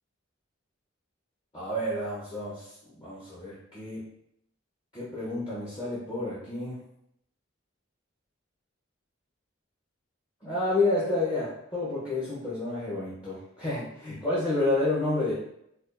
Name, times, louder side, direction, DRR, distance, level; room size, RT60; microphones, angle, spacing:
voice 1, 1.5-4.0 4.9-6.8 10.4-15.3, left 2 dB, 20° left, -8 dB, 0.8 m, -30 dB
4.3 x 2.4 x 2.5 m, 0.76 s
head